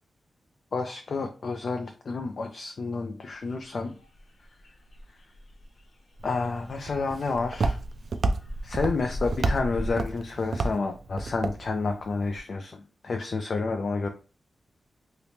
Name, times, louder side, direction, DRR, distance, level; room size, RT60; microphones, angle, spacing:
voice 1, 0.7-3.9 6.2-7.8 8.6-14.1, left 4 dB, 55° left, 5 dB, 0.4 m, -30 dB
sound 1, 3.4-9.9, equal, 80° left, 0.8 m, -38 dB
Walk footsteps, 6.2-12.4, right 3 dB, 60° right, 0.4 m, -31 dB
2.8 x 2.8 x 3.4 m, 0.34 s
wide cardioid pair, 145°, 0 cm